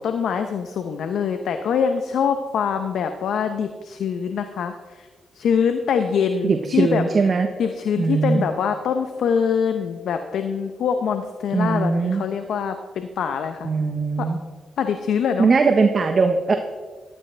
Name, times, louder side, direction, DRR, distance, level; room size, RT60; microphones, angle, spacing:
voice 1, 0.0-5.1 5.3-7.0 7.6-13.7 14.2-14.3 14.8-15.5, left 7 dB, 80° left, 7 dB, 0.7 m, -24 dB
voice 2, 6.4-7.5 8.0-8.4 11.5-12.2 13.6-14.4 15.4-16.5, right 4 dB, 50° right, 5 dB, 1.0 m, -20 dB
14.5 x 12.0 x 3.4 m, 1.4 s
supercardioid pair, 55°, 0 cm